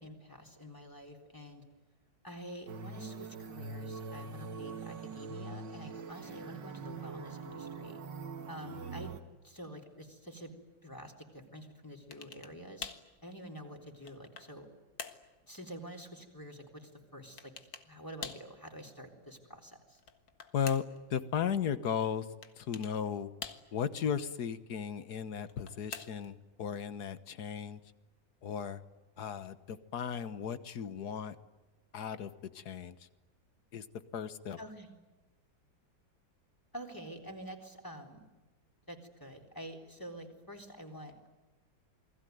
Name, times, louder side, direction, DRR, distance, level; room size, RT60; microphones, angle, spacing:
voice 1, 0.0-1.6 2.2-8.0 8.5-9.1 9.4-10.5 10.8-12.9 13.2-14.7 15.4-17.5 17.8-20.0 34.6-34.9 36.7-38.3 38.9-41.3, equal, 10° left, 3 dB, 3.8 m, -48 dB
sound 1, 2.7-9.2, right 4 dB, 70° right, 2.3 m, -43 dB
sound 2, 12.1-12.6 12.8-13.1 13.7-14.6 15.0-15.3 17.4-17.9 18.2-18.5 19.9-21.0 22.4-23.0 23.4-23.9 25.4-26.4, left 7 dB, 75° left, 2.3 m, -45 dB
voice 2, 21.1-22.3 22.6-23.3 23.7-27.8 28.4-28.8 29.2-31.3 31.9-33.1 33.7-33.9 34.1-34.6, left 8 dB, 60° left, 13 dB, 1.7 m, -35 dB
29.0 x 21.0 x 9.4 m, 1.2 s
omnidirectional pair, 2.0 m